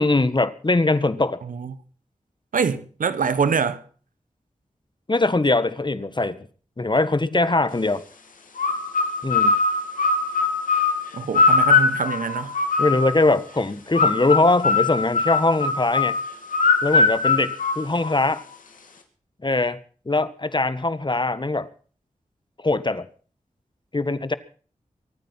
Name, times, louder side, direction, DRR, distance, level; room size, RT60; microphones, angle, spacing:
voice 1, 0.0-1.4 5.1-6.4 6.8-8.0 9.2-9.5 12.8-16.2 16.8-18.4 19.4-19.8 20.0-21.7 22.6-23.1 23.9-24.4, left 2 dB, 35° left, 1.5 m, -21 dB
voice 2, 1.5-1.8 2.5-3.8 11.1-12.5, right 6 dB, 90° right, 1.2 m, -24 dB
sound 1, 8.6-13.3 13.9-18.4, left 4 dB, 85° left, 2.5 m, -21 dB
23.5 x 9.4 x 5.7 m
cardioid pair, 40°, 13 cm